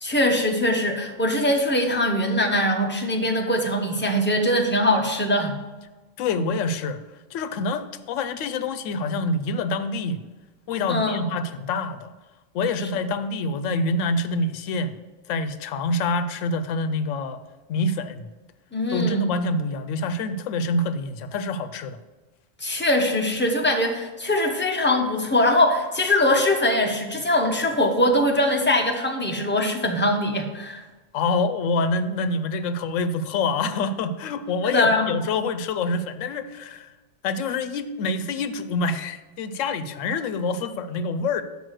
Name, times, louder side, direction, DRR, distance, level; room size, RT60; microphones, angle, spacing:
voice 1, 0.0-5.6 10.9-11.2 18.7-19.2 22.6-30.8 34.6-35.1, left 1 dB, 10° left, 1 dB, 0.8 m, -22 dB
voice 2, 6.2-7.0 7.3-10.2 10.7-12.1 12.5-15.0 15.3-17.4 17.7-18.3 18.9-22.0 31.1-36.9 37.2-41.4, left 3 dB, 85° left, 10 dB, 0.9 m, -26 dB
6.2 x 5.4 x 6.4 m, 1.2 s
omnidirectional pair, 1.3 m